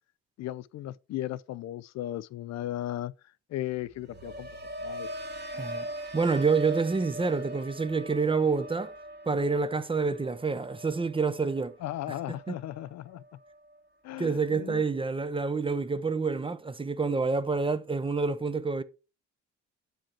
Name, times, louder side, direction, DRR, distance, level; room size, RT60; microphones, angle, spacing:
voice 1, 0.4-3.1 3.5-4.5 4.8-5.1 11.8-13.2 14.0-14.8, left 13 dB, 55° left, 0.4 m, -36 dB
sound 1, 3.7-13.8 14.1-14.6, right 1 dB, 30° right, 1.4 m, -41 dB
voice 2, 5.5-5.9 6.1-8.9 9.3-11.8 14.2-18.8, right 4 dB, 15° right, 0.6 m, -28 dB
7.2 x 5.2 x 4.4 m
cardioid pair, 90°, 32 cm